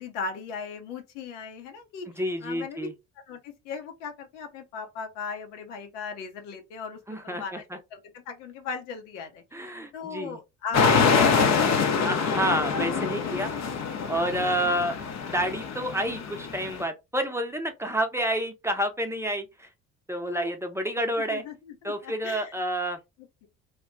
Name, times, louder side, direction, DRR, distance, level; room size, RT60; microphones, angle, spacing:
voice 1, 0.0-2.1 2.4-2.9 3.3-7.6 7.9-9.4 9.9-12.3 13.1-13.4 14.3-14.4 20.2-20.5 21.3-22.5 23.4-23.5, left 5 dB, 85° left, 0.8 m, -38 dB
voice 2, 2.2-2.9 7.1-7.8 9.5-10.4 12.0-13.5 14.1-14.9 15.3-19.7 20.1-21.4 21.8-23.0, right 1 dB, 5° right, 0.6 m, -29 dB
sound 1, 10.7-16.8, left 5 dB, 50° left, 0.7 m, -25 dB
2.3 x 2.2 x 3.6 m
hypercardioid pair, 65°, 36 cm